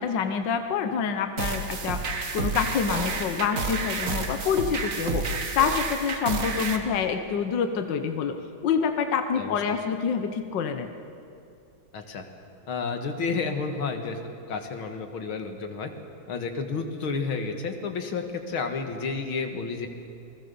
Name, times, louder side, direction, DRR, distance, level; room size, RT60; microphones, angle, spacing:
voice 1, 0.0-2.0 2.3-8.4 8.6-10.9, left 6 dB, 65° left, 7 dB, 1.7 m, -27 dB
sound 1, 1.4-6.8, right 4 dB, 45° right, 1.8 m, -30 dB
voice 2, 11.9-12.3 12.7-14.2 14.5-15.9 16.3-19.9, left 4 dB, 80° left, 5 dB, 2.5 m, -31 dB
29.0 x 20.0 x 7.0 m, 2.6 s
omnidirectional pair, 2.2 m